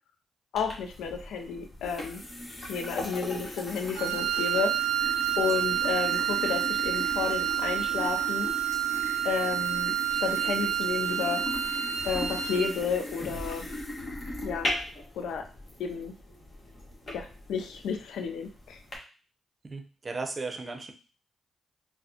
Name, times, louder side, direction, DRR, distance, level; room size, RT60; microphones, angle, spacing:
voice 1, 0.5-2.2 2.7-4.9 5.4-8.5 9.2-11.4 12.0-13.7 14.4-14.7 15.1-15.4 15.8-16.1 17.1-18.8, left 6 dB, 80° left, 5 dB, 0.4 m, -32 dB
sound 1, 0.5-19.0, left 1 dB, 45° left, 1.2 m, -39 dB
Wind instrument woodwind instrument, 3.9-12.8, right 11 dB, 90° right, 0.3 m, -29 dB
voice 2, 19.6-20.9, right 3 dB, 40° right, 6 dB, 0.6 m, -36 dB
4.0 x 2.1 x 2.7 m, 0.36 s
hypercardioid pair, 45°, 0 cm